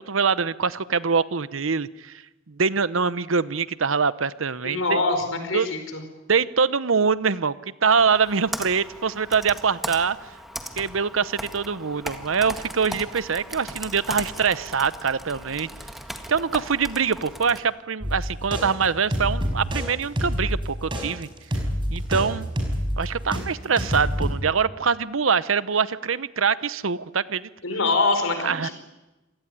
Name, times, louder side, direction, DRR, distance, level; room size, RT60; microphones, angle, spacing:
voice 1, 0.0-2.2 2.5-5.0 5.5-5.7 6.3-7.6 7.8-10.2 10.8-15.7 16.3-21.3 21.9-22.5 23.0-27.5 28.4-28.7, right 5 dB, 85° right, 16 dB, 0.9 m, -24 dB
voice 2, 4.6-6.0 27.6-28.7, left 3 dB, 85° left, 7 dB, 5.0 m, -24 dB
Computer keyboard, 7.9-17.6, equal, ahead, 1.8 m, -38 dB
sound 1, 18.0-23.4 23.8-24.3, equal, 25° right, 5.7 m, -27 dB
27.0 x 18.0 x 10.0 m, 1.1 s
head